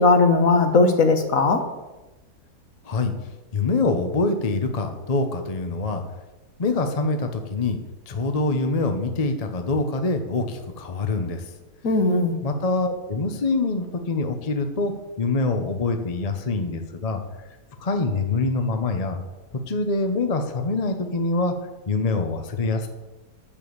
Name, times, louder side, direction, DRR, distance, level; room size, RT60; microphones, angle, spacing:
voice 1, 0.0-1.6 11.8-12.4, left 3 dB, 55° left, 7 dB, 1.5 m, -18 dB
voice 2, 3.5-6.0 6.6-7.8 8.1-11.4 12.4-14.9 15.2-17.2 17.8-19.2 19.7-21.5 21.9-22.9, left 3 dB, 30° left, 6 dB, 0.7 m, -25 dB
10.0 x 7.0 x 7.0 m, 1.1 s
omnidirectional pair, 1.8 m